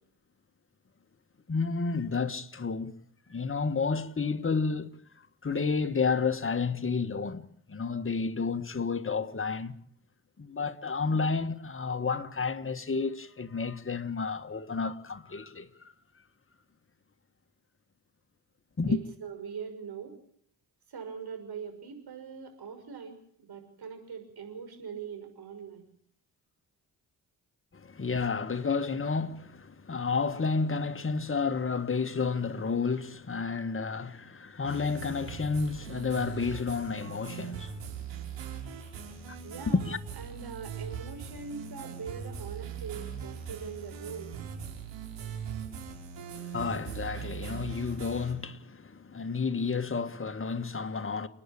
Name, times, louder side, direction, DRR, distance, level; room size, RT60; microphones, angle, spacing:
voice 1, 1.5-2.9 3.3-4.9 5.4-9.7 10.4-15.9 18.8-19.0 27.7-37.9 39.3-39.4 39.9-40.0 46.3-51.3, left 4 dB, 25° left, 1.7 m, -31 dB
voice 2, 18.9-20.1 20.9-25.9 38.9-39.0 39.4-39.8 40.2-44.3, right 6 dB, 55° right, 6.3 m, -42 dB
sound 1, 34.6-48.3, right 7 dB, 70° right, 5.7 m, -40 dB
29.5 x 10.0 x 8.7 m
hypercardioid pair, 45°, 45 cm